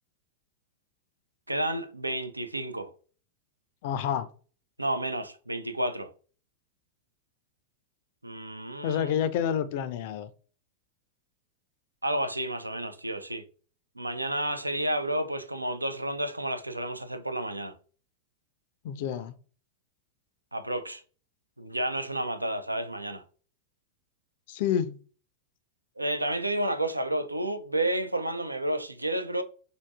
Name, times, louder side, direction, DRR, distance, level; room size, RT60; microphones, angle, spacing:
voice 1, 1.5-2.9 4.8-6.1 8.2-9.1 12.0-13.4 14.0-17.7 20.5-21.0 21.6-23.2 26.0-29.4, right 1 dB, 85° right, 0.3 m, -31 dB
voice 2, 3.8-4.3 8.8-10.3 18.8-19.3 24.5-25.0, left 9 dB, 50° left, 0.4 m, -28 dB
4.9 x 2.6 x 2.3 m
figure-of-eight pair, 90°, 0 cm